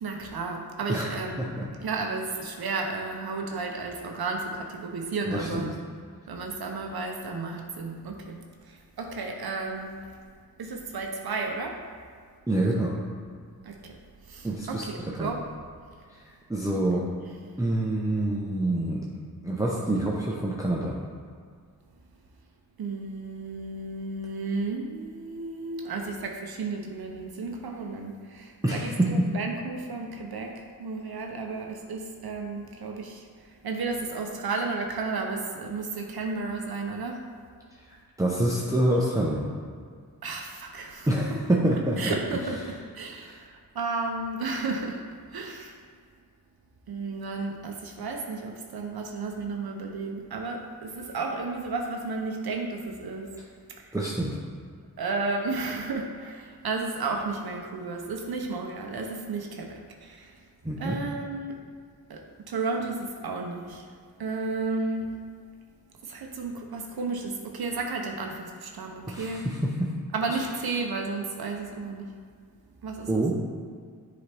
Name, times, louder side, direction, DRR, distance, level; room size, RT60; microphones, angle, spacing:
voice 1, 0.0-1.5 1.8-5.7 6.3-8.4 9.0-9.9 10.6-11.8 13.7-13.8 14.3-15.4 22.8-30.5 30.8-33.2 33.6-37.2 40.2-41.1 42.0-43.4 43.8-45.0 45.3-45.7 46.9-53.3 55.0-60.2 60.8-61.6 62.1-62.2 62.5-63.8 64.2-65.1 66.1-69.4 70.1-72.1 72.8-73.1, right 3 dB, 70° right, 2 dB, 0.7 m, -33 dB
voice 2, 0.9-1.7 5.2-5.7 12.5-12.9 14.4-14.9 15.2-15.3 16.1-16.2 16.5-17.0 17.6-19.1 19.4-21.0 28.6-29.3 38.2-39.5 41.1-42.2 53.9-54.4 60.6-61.0 69.1-69.9 70.3-70.5 73.1-73.3, right 1 dB, 10° right, -4 dB, 0.7 m, -26 dB
7.3 x 4.0 x 3.3 m, 2.1 s
cardioid pair, 55°, 39 cm